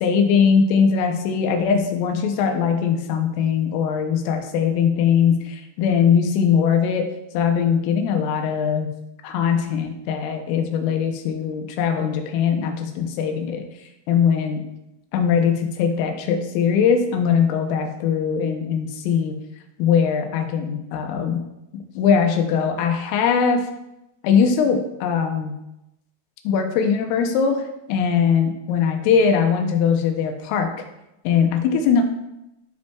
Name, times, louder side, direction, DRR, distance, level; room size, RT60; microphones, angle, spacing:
voice 1, 0.0-7.1 7.3-8.9 9.2-13.7 14.1-14.6 15.1-19.3 19.8-21.4 21.7-23.6 24.2-25.6 26.4-30.7 31.2-32.0, left 6 dB, 90° left, 5 dB, 3.4 m, -20 dB
12.0 x 5.2 x 2.3 m, 0.89 s
omnidirectional pair, 5.6 m